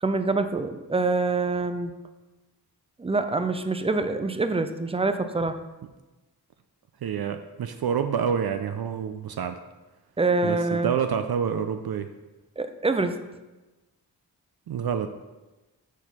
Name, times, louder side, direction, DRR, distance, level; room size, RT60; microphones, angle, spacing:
voice 1, 0.0-1.9 3.0-5.6 10.2-10.9 12.6-13.1, right 3 dB, 15° right, 9 dB, 0.5 m, -25 dB
voice 2, 7.0-9.6 10.4-12.1 14.7-15.1, right 7 dB, 65° right, 8 dB, 0.5 m, -28 dB
7.1 x 4.3 x 4.2 m, 1.1 s
cardioid pair, 45°, 41 cm